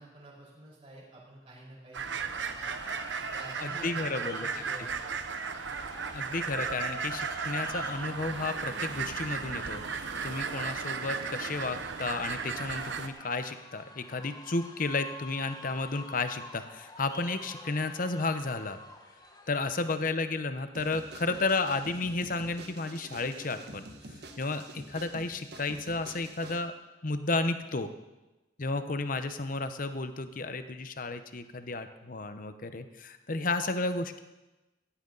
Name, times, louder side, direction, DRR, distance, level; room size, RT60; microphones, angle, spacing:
voice 1, 0.0-5.2, right 1 dB, 30° right, -4 dB, 5.1 m, -50 dB
sound 1, 1.9-13.1, right 5 dB, 85° right, 0.9 m, -35 dB
sound 2, 2.2-20.2, left 2 dB, 20° left, 1.3 m, -49 dB
voice 2, 3.6-4.5 6.1-9.8 10.2-18.8 19.5-23.9 24.4-26.7 27.0-27.9 28.6-34.2, left 3 dB, 50° left, 9 dB, 0.9 m, -32 dB
sound 3, 20.7-26.6, right 1 dB, 60° right, 1.6 m, -47 dB
17.0 x 14.5 x 4.0 m, 1.1 s
head